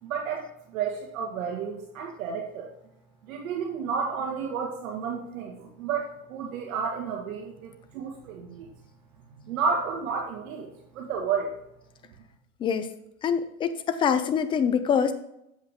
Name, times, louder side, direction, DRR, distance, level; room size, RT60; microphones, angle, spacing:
voice 1, 0.0-2.7 3.2-8.7 9.3-11.6, right 6 dB, 70° right, 0 dB, 1.8 m, -31 dB
voice 2, 12.6-12.9 13.2-15.1, left 7 dB, 15° left, 10 dB, 0.4 m, -25 dB
8.0 x 7.6 x 3.6 m, 0.80 s
supercardioid pair, 130°, 42 cm